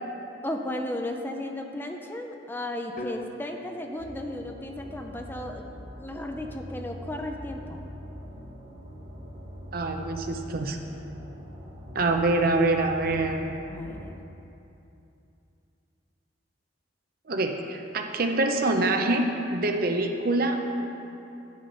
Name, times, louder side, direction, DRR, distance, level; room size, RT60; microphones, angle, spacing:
voice 1, 0.4-5.6 6.0-7.8 13.7-14.1, left 1 dB, 10° left, 3 dB, 0.4 m, -35 dB
sound 1, 3.0-7.0, left 1 dB, 45° left, 0.8 m, -45 dB
sound 2, 4.0-14.2, equal, 70° right, 2.5 m, -43 dB
voice 2, 9.7-10.8 11.9-13.5 17.3-20.6, right 2 dB, 55° right, 4 dB, 0.7 m, -25 dB
9.7 x 6.3 x 5.4 m, 2.8 s
head